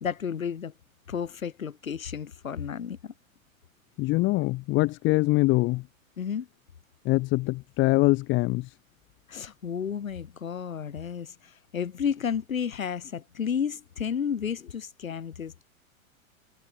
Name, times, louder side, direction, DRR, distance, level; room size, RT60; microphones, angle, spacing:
voice 1, 0.0-0.7 1.1-3.1 6.2-6.5 9.3-15.7, left 7 dB, 70° left, 2.4 m, -32 dB
voice 2, 4.0-5.8 7.0-8.7, left 21 dB, 25° left, 1.0 m, -23 dB
figure-of-eight pair, 100°, 42 cm